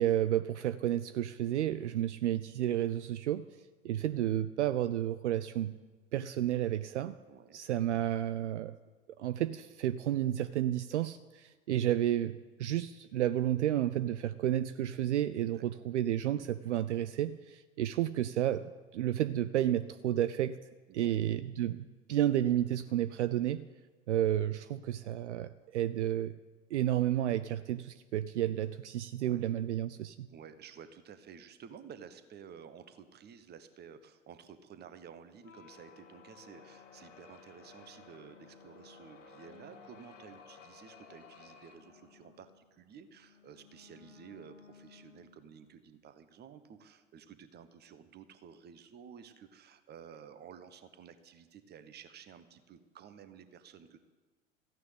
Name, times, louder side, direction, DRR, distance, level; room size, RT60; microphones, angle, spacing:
voice 1, 0.0-3.4 3.8-5.7 6.1-7.1 7.5-8.7 9.2-20.6 20.9-23.7 24.1-26.3 26.7-30.3, right 12 dB, 65° right, 14 dB, 0.6 m, -31 dB
voice 2, 7.3-7.6 15.5-15.6 20.9-21.2 29.2-29.4 30.3-54.0, right 7 dB, 25° right, 11 dB, 1.2 m, -53 dB
sound 1, 35.3-45.7, left 5 dB, 75° left, 1.7 m, -56 dB
14.5 x 9.5 x 8.2 m, 1.3 s
figure-of-eight pair, 85°, 39 cm